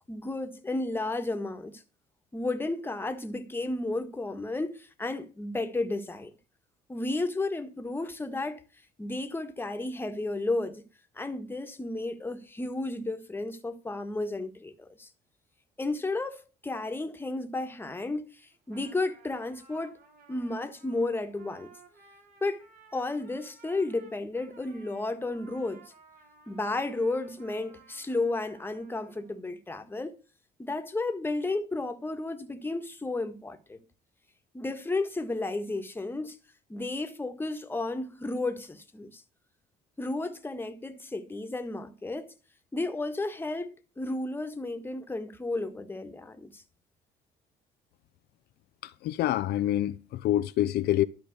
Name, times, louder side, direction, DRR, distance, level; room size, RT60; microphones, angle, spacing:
voice 1, 0.1-1.8 2.3-6.3 6.9-8.6 9.0-10.8 11.1-15.1 15.8-18.4 18.7-20.0 20.3-21.7 22.4-25.9 26.5-30.2 30.6-33.8 34.5-36.4 36.7-39.2 40.0-42.3 42.7-46.6, left 2 dB, 10° left, 1.6 m, -33 dB
Trumpet, 18.5-29.4, right 5 dB, 60° right, 4.6 m, -57 dB
voice 2, 48.8-51.0, left 13 dB, 70° left, 0.6 m, -27 dB
12.5 x 5.3 x 8.0 m
cardioid pair, 110°, 17 cm